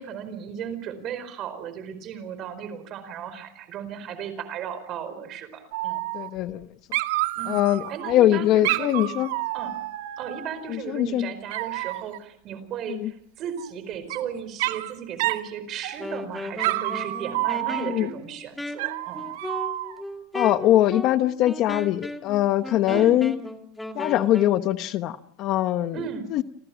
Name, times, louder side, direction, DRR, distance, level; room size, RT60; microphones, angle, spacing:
voice 1, 0.0-6.0 7.4-7.6 7.9-9.0 9.5-9.7 10.2-19.3 22.9-23.2 25.9-26.3, right 8 dB, 35° right, 11 dB, 4.7 m, -35 dB
Dog, 5.7-6.6 6.9-8.1 8.6-10.7 11.5-12.2 13.6-14.2 14.6-14.9 15.2-15.5 15.8-16.2 16.6-18.1 18.8-20.0, right 17 dB, 65° right, 2.0 m, -29 dB
voice 2, 6.1-6.7 7.5-9.3 10.7-11.3 12.9-13.1 17.8-18.1 20.3-23.3 23.9-26.0 26.3-26.4, left 13 dB, 40° left, 12 dB, 1.0 m, -22 dB
Wind instrument woodwind instrument, 15.9-24.6, left 1 dB, 5° left, 2.0 m, -36 dB
28.5 x 27.0 x 6.1 m, 0.72 s
supercardioid pair, 155°, 0 cm